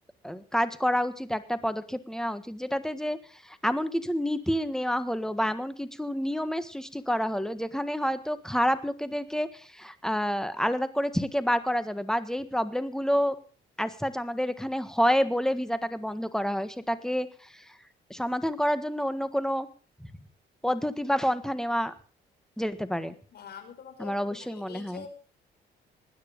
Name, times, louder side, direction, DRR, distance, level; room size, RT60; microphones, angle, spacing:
voice 1, 0.2-13.3 13.8-17.6 18.1-19.7 20.0-20.1 20.6-21.9 22.6-23.1 24.0-25.1, equal, 5° left, 12 dB, 1.6 m, -28 dB
voice 2, 23.3-25.1, left 7 dB, 60° left, 6 dB, 5.2 m, -45 dB
20.0 x 9.7 x 5.3 m, 0.40 s
cardioid pair, 95°, 19 cm